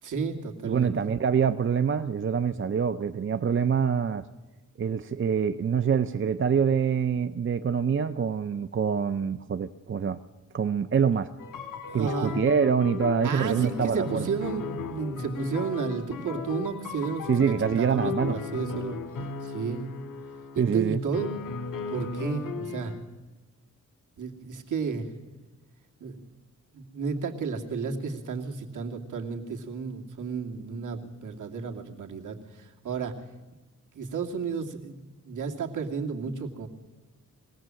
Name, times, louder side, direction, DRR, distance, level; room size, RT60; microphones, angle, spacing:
voice 1, 0.0-1.1 11.9-12.4 13.2-17.3 17.8-19.0 19.4-19.9 20.5-21.3 21.9-22.9 24.2-25.3 26.0-26.2 26.7-33.1 33.9-35.0 35.2-36.7, right 5 dB, 70° right, 2 dB, 2.7 m, -32 dB
voice 2, 0.6-4.2 4.8-10.2 10.5-11.3 11.9-14.3 17.3-18.4 20.6-21.0, right 7 dB, 40° right, 10 dB, 0.7 m, -25 dB
sound 1, 11.4-20.7 21.1-23.0, left 5 dB, 85° left, 2.1 m, -36 dB
22.5 x 17.5 x 7.7 m, 1.1 s
cardioid pair, 95°, 32 cm